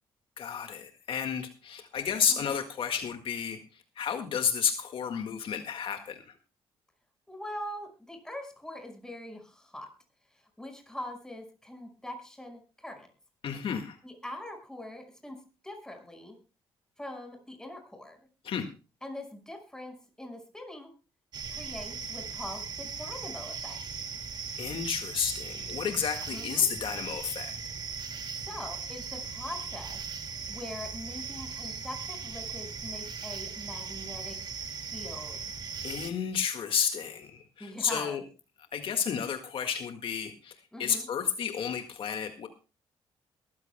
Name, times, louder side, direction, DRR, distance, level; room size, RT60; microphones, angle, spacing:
voice 1, 0.4-6.2 13.4-14.0 18.4-18.7 24.6-27.5 35.8-38.2 38.7-40.5 40.8-42.5, left 7 dB, 60° left, 6 dB, 1.8 m, -31 dB
voice 2, 7.3-9.9 10.6-13.1 14.0-15.4 15.6-16.4 17.0-18.2 19.0-20.9 21.5-23.8 26.3-26.7 28.1-30.0 30.5-34.4 34.9-35.4 37.6-38.2 40.7-41.1, left 1 dB, 5° left, 5 dB, 5.4 m, -42 dB
sound 1, 21.3-36.1, right 5 dB, 45° right, 2.2 m, -38 dB
22.0 x 14.5 x 2.2 m, 0.33 s
cardioid pair, 105°, 10 cm